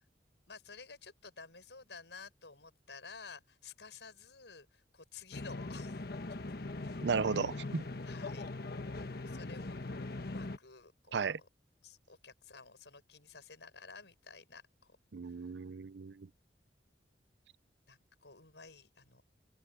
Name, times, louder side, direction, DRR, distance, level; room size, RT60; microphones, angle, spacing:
voice 1, 0.5-6.0 6.8-7.1 8.1-8.6 9.2-11.5 11.8-15.0 15.2-15.5 17.9-19.2, left 4 dB, 80° left, 6.1 m, -53 dB
sound 1, 5.3-10.6, left 2 dB, 60° left, 1.2 m, -41 dB
voice 2, 7.0-7.8 11.1-11.4 15.1-16.3, right 5 dB, 75° right, 0.6 m, -34 dB
open air
head